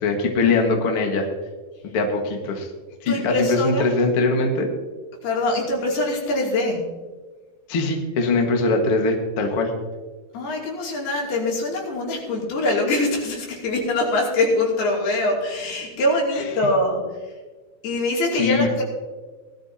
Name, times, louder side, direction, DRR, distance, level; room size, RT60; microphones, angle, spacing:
voice 1, 0.0-1.3 1.8-2.7 3.0-4.7 7.7-9.7 18.3-18.7, left 3 dB, 50° left, 2 dB, 1.8 m, -21 dB
voice 2, 3.1-3.9 5.2-6.9 10.3-17.0 17.8-18.8, left 1 dB, 75° left, -2 dB, 4.7 m, -23 dB
18.5 x 12.5 x 2.8 m, 1.3 s
omnidirectional pair, 4.6 m